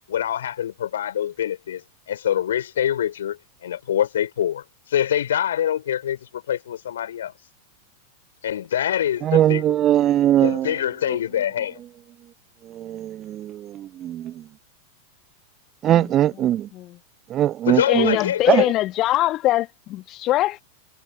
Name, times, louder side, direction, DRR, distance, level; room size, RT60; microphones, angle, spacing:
voice 1, 0.1-7.3 8.4-9.9 10.4-11.8 17.6-18.7, left 10 dB, 60° left, 5.7 m, -25 dB
voice 2, 9.3-10.7 12.8-14.3 15.8-16.7 17.3-18.2 18.5-18.6, right 12 dB, 30° right, 0.4 m, -20 dB
voice 3, 17.9-20.6, left 15 dB, 35° left, 1.4 m, -22 dB
figure-of-eight pair, 90°, 0 cm